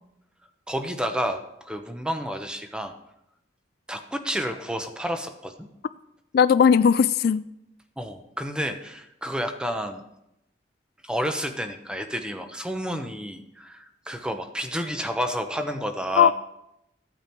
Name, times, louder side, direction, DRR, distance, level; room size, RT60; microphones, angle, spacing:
voice 1, 0.7-2.9 3.9-5.7 8.0-10.0 11.0-16.3, equal, 5° right, 0.9 m, -30 dB
voice 2, 6.3-7.4 16.2-16.3, left 7 dB, 55° left, 0.3 m, -17 dB
14.5 x 8.7 x 4.5 m
head